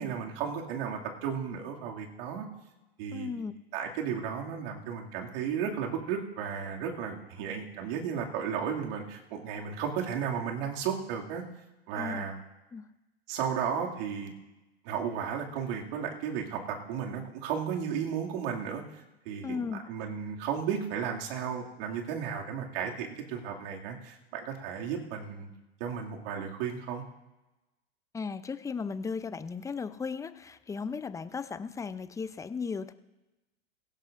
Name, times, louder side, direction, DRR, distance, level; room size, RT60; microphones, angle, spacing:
voice 1, 0.0-2.5 3.0-3.3 3.7-11.4 11.9-12.4 13.3-14.3 14.8-25.5 25.8-27.0, right 7 dB, 60° right, 0 dB, 2.4 m, -34 dB
voice 2, 3.1-3.5 12.0-12.2 12.7-12.9 19.4-19.8 28.1-32.9, left 5 dB, 10° left, 13 dB, 0.5 m, -36 dB
18.5 x 16.5 x 2.6 m, 1.0 s
hypercardioid pair, 100°, 33 cm